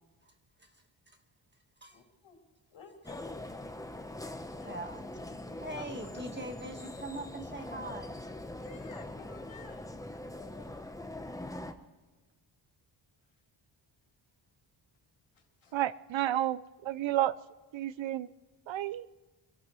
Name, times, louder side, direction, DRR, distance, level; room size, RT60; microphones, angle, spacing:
voice 1, 0.6-1.2 1.8-2.0 4.7-5.0 5.6-8.2, right 1 dB, 20° right, 1.5 m, -42 dB
voice 2, 1.9-2.4 2.7-3.3 4.6-4.8 5.7-6.1 8.6-9.8 10.6-10.8 15.3-15.7, left 5 dB, 65° left, 3.0 m, -52 dB
sound 1, 3.0-11.7, left 1 dB, 5° left, 0.9 m, -42 dB
voice 3, 15.7-17.3 17.7-18.3 18.7-19.1, right 13 dB, 65° right, 0.5 m, -31 dB
25.5 x 17.0 x 3.1 m
wide cardioid pair, 100°, 50 cm